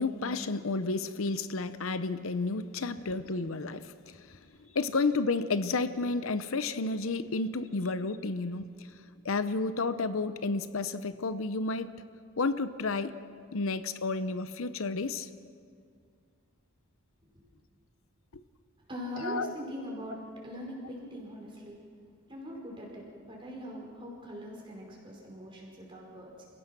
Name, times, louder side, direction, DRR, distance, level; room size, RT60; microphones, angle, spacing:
voice 1, 0.0-8.7 9.2-11.9 12.4-13.1 13.5-15.3 18.3-18.4 19.2-19.5, left 3 dB, 80° left, 12 dB, 0.8 m, -31 dB
voice 2, 4.4-4.8 17.3-17.5 18.9-21.8 22.3-26.4, equal, 25° right, -2 dB, 5.2 m, -42 dB
29.0 x 16.5 x 6.1 m, 2.2 s
head